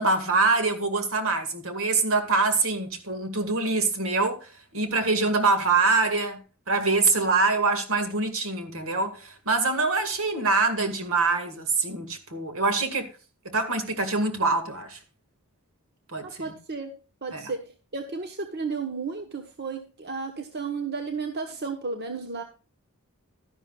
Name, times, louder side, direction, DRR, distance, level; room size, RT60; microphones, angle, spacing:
voice 1, 0.0-6.4 6.7-13.1 13.4-15.0 16.1-16.5 17.3-17.5, right 3 dB, 70° right, 2.0 m, -25 dB
voice 2, 16.4-16.9 17.2-17.6 17.9-22.4, right 4 dB, 50° right, 1.2 m, -33 dB
12.5 x 11.0 x 2.4 m
head